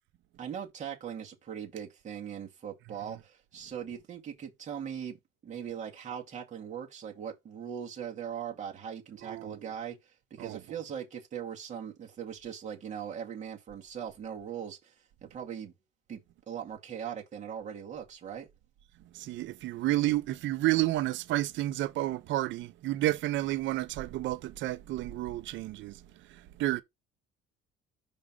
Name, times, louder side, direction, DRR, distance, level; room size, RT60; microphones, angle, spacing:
voice 1, 0.4-5.2 5.4-14.9 15.3-15.7 16.1-16.2 16.5-18.5, right 8 dB, 35° right, 2.0 m, -40 dB
voice 2, 9.2-9.6 10.4-10.6 19.1-26.0 26.3-26.8, right 16 dB, 65° right, 0.6 m, -31 dB
6.1 x 5.1 x 3.7 m
cardioid pair, 165°, 21 cm